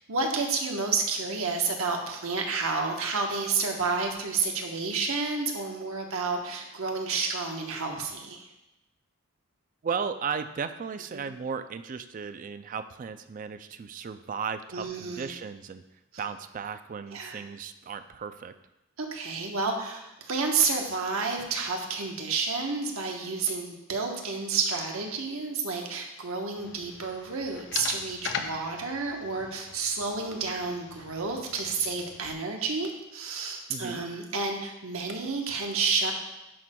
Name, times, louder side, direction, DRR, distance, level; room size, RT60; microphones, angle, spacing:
voice 1, 0.1-8.5 11.1-11.2 14.7-15.3 17.1-17.4 19.0-36.1, right 4 dB, 75° right, 2 dB, 1.0 m, -30 dB
voice 2, 9.8-15.8 16.2-18.5 33.7-34.0, right 6 dB, 40° right, 10 dB, 0.3 m, -35 dB
sound 1, 26.6-32.3, left 6 dB, 55° left, 0.5 m, -40 dB
11.0 x 5.9 x 2.2 m, 0.93 s
head